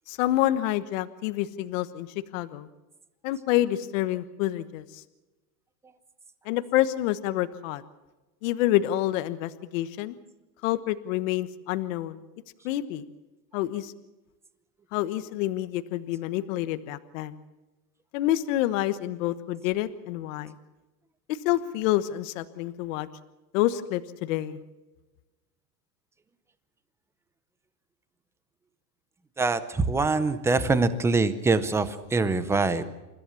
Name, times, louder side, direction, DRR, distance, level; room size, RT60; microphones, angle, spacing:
voice 1, 0.1-2.1 2.3-2.7 3.2-5.0 6.4-7.8 8.4-10.2 10.6-12.2 12.6-13.0 13.5-13.9 14.9-17.4 18.1-20.5 21.3-23.1 23.5-24.6, left 14 dB, 50° left, 12 dB, 1.3 m, -27 dB
voice 2, 29.4-32.9, right 3 dB, 5° right, 13 dB, 0.6 m, -24 dB
29.0 x 14.0 x 7.1 m, 1.1 s
supercardioid pair, 155°, 50 cm